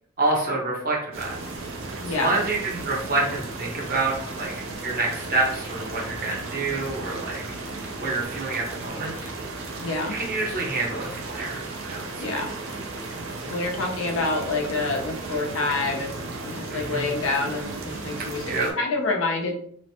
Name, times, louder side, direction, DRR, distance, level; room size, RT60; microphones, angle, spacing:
voice 1, 0.2-1.4 2.1-4.5 4.8-7.4 8.0-9.3 10.1-12.5 16.7-17.1 18.4-18.7, right 3 dB, 45° right, -2 dB, 0.9 m, -27 dB
sound 1, 1.1-18.7, right 3 dB, 80° right, 0.6 m, -35 dB
voice 2, 2.0-2.3 9.8-10.1 12.2-12.5 13.5-16.1 16.4-18.4 18.8-19.5, left 3 dB, 75° left, 1 dB, 0.6 m, -27 dB
3.1 x 2.1 x 2.8 m, 0.63 s
head